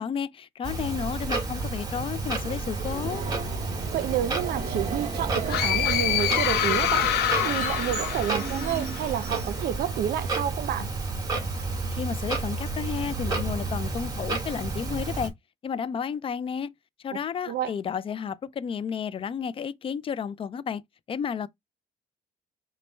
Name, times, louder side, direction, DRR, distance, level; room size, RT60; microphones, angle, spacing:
voice 1, 0.0-3.3 11.9-15.3 15.6-16.7 17.0-20.8 21.1-21.5, left 7 dB, 30° left, 0.4 m, -32 dB
Clock, 0.6-15.3, right 3 dB, 25° right, 1.9 m, -31 dB
Subway metro underground, 2.2-9.9, right 5 dB, 40° right, 1.1 m, -37 dB
voice 2, 3.9-7.1 7.4-10.9 17.5-17.7, right 10 dB, 65° right, 0.7 m, -29 dB
sound 1, 5.5-9.2, left 12 dB, 75° left, 0.7 m, -26 dB
5.1 x 2.2 x 4.4 m
cardioid pair, 110°, 17 cm